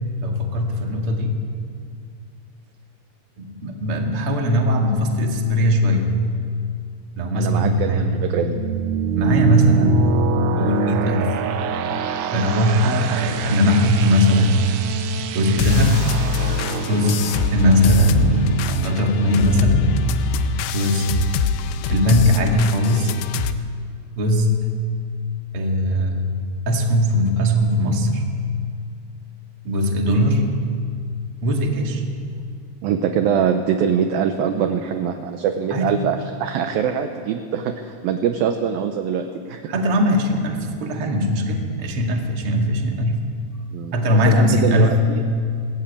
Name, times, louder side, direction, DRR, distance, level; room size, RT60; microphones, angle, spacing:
voice 1, 0.2-1.4 3.4-6.1 7.2-8.3 9.2-10.1 10.5-11.3 12.3-14.5 15.2-16.1 16.9-19.9 20.7-21.1 21.9-23.2 24.2-24.7 25.5-26.3 26.7-28.2 29.6-30.5 31.4-32.0 35.7-36.0 39.7-43.3 43.9-45.0, equal, 40° right, 2 dB, 2.3 m, -19 dB
voice 2, 7.4-8.6 32.8-39.6 43.7-45.2, right 7 dB, 75° right, 7 dB, 2.3 m, -23 dB
sound 1, 8.1-19.8, right 8 dB, 90° right, 1.7 m, -27 dB
sound 2, 15.6-23.5, left 7 dB, 85° left, 3.0 m, -24 dB
21.5 x 14.0 x 8.8 m, 2.3 s
omnidirectional pair, 4.9 m